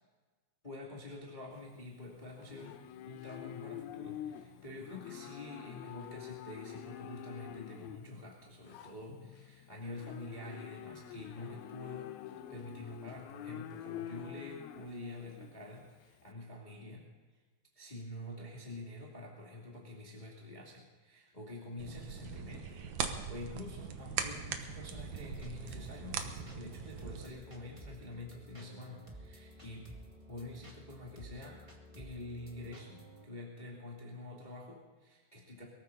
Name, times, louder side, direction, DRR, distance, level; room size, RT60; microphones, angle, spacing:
voice 1, 0.6-12.2 12.5-17.1 17.8-29.9 30.3-31.6 32.0-35.7, left 2 dB, 15° left, -3 dB, 2.2 m, -47 dB
Livestock farm animals working animals, 1.5-16.3, left 12 dB, 85° left, 2.6 m, -47 dB
sound 1, 21.8-27.3, right 7 dB, 65° right, 1.9 m, -40 dB
sound 2, 24.9-33.2, equal, 15° right, 0.9 m, -53 dB
23.0 x 14.0 x 4.1 m, 1.3 s
omnidirectional pair, 4.4 m